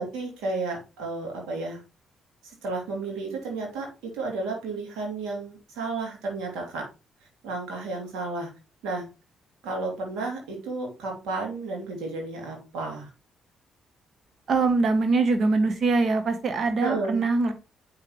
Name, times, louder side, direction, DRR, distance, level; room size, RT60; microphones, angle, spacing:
voice 1, 0.0-1.8 2.4-6.9 7.4-8.5 8.8-9.1 9.6-13.1 16.8-17.2, right 3 dB, 80° right, 0 dB, 3.0 m, -32 dB
voice 2, 14.5-17.5, right 3 dB, 55° right, 9 dB, 1.1 m, -23 dB
7.4 x 5.9 x 3.2 m, 0.30 s
supercardioid pair, 55°, 0 cm